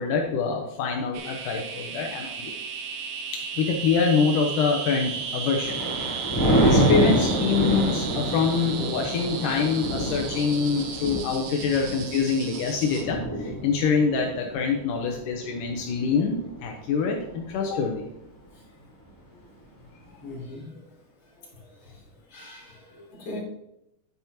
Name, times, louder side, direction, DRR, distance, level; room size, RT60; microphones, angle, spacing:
voice 1, 0.0-2.5 3.3-18.1, left 5 dB, 80° left, 1 dB, 2.4 m, -25 dB
sound 1, 1.1-13.0, right 6 dB, 75° right, 2.5 m, -35 dB
Thunder, 5.2-16.7 17.2-17.5, right 1 dB, 15° left, 0.6 m, -27 dB
voice 2, 20.2-20.8 21.8-21.9 22.3-23.4, left 2 dB, 35° left, -5 dB, 3.6 m, -40 dB
9.8 x 9.3 x 3.0 m, 0.82 s
omnidirectional pair, 3.8 m